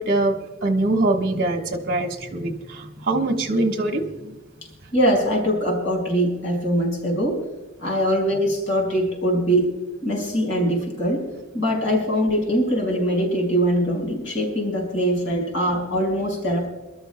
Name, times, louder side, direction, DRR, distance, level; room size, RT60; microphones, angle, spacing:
voice 1, 0.0-4.4, right 2 dB, 50° right, 4 dB, 1.3 m, -23 dB
voice 2, 4.9-7.4 7.8-9.7 10.0-11.2 11.5-16.7, equal, 65° left, 0 dB, 5.1 m, -22 dB
28.0 x 13.0 x 2.2 m, 1.1 s
head